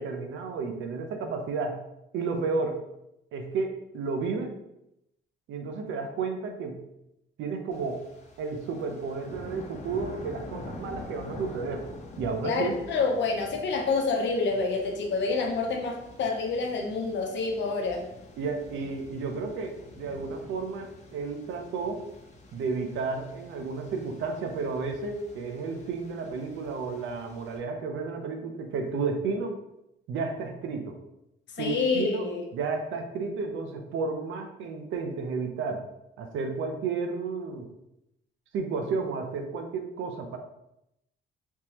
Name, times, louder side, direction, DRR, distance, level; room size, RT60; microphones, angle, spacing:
voice 1, 0.0-1.8 2.1-2.8 3.3-4.5 5.5-6.8 7.4-8.0 8.4-11.9 12.2-12.8 18.4-22.1 22.5-29.6 30.1-31.0 31.6-35.9 36.2-37.7 38.5-40.4, right 4 dB, 80° right, 5 dB, 0.6 m, -32 dB
sound 1, 7.7-27.6, left 2 dB, 35° left, 0.8 m, -47 dB
voice 2, 12.4-18.1 31.5-32.4, left 4 dB, 65° left, 1 dB, 0.8 m, -28 dB
3.6 x 2.9 x 2.9 m, 0.84 s
cardioid pair, 90°, 20 cm